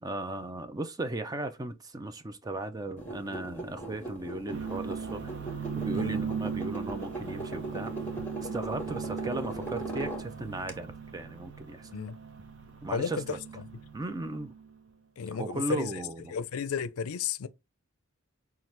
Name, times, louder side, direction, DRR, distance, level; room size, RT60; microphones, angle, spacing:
voice 1, 0.0-7.9 8.5-11.9 12.8-13.4 13.9-14.5 15.3-16.3, right 2 dB, 15° right, 0.4 m, -36 dB
sound 1, 3.0-10.7, right 1 dB, 10° left, 1.0 m, -39 dB
sound 2, 4.5-14.7, right 6 dB, 55° right, 0.8 m, -38 dB
voice 2, 12.9-13.4 15.2-16.0 16.3-17.5, left 6 dB, 85° left, 0.4 m, -33 dB
5.7 x 2.4 x 3.2 m
head